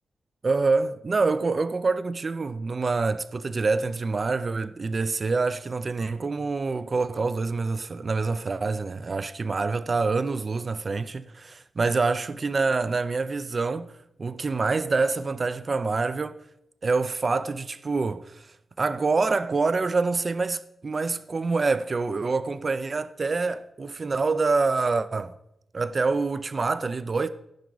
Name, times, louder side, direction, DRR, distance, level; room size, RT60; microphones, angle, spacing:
voice 1, 0.4-13.9 14.2-16.4 16.8-25.3 25.7-27.3, right 4 dB, 40° right, 0.4 m, -26 dB
15.5 x 5.7 x 3.9 m
wide cardioid pair, 120°, 0 cm